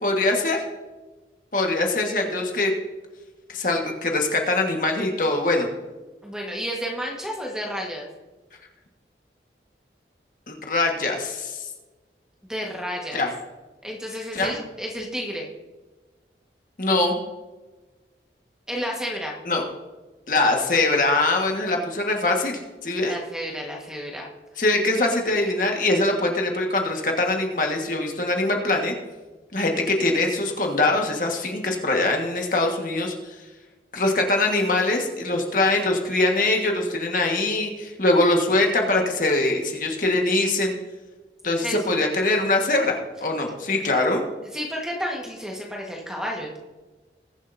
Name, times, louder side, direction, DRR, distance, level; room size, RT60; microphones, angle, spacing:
voice 1, 0.0-0.6 1.5-2.7 3.5-5.7 10.5-11.7 13.1-13.3 14.3-14.6 16.8-17.2 19.4-19.6 20.3-23.2 24.6-28.9 29.5-33.3 33.9-40.7 41.4-44.2, left 2 dB, 50° left, 2 dB, 1.5 m, -23 dB
voice 2, 6.2-8.1 12.5-13.2 13.8-15.5 18.7-19.4 23.0-24.3 41.6-42.0 44.5-46.6, equal, 5° right, -1 dB, 1.4 m, -31 dB
20.5 x 7.5 x 2.7 m, 1.2 s
head